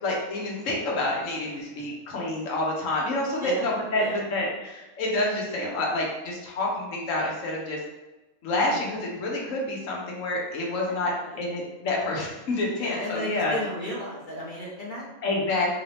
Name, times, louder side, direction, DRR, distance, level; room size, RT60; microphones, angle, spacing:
voice 1, 0.0-7.8 8.4-11.1 11.4-13.6 15.2-15.7, left 2 dB, 65° left, -2 dB, 1.2 m, -28 dB
voice 2, 1.4-1.8 3.4-3.7 3.9-4.2 8.7-8.8 10.9-11.7 12.8-15.0, left 1 dB, 40° left, -5 dB, 0.9 m, -35 dB
3.8 x 2.7 x 3.3 m, 1.1 s
omnidirectional pair, 1.5 m